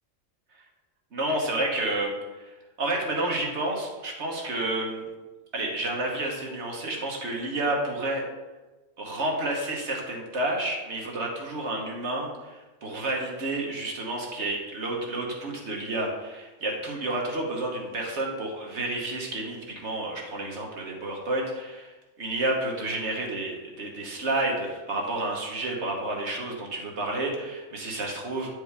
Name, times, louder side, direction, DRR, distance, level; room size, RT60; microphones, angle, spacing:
voice 1, 1.1-5.0 5.5-8.2 9.0-28.5, right 2 dB, 65° right, -1 dB, 1.5 m, -30 dB
9.3 x 4.7 x 3.4 m, 1.2 s
omnidirectional pair, 1.3 m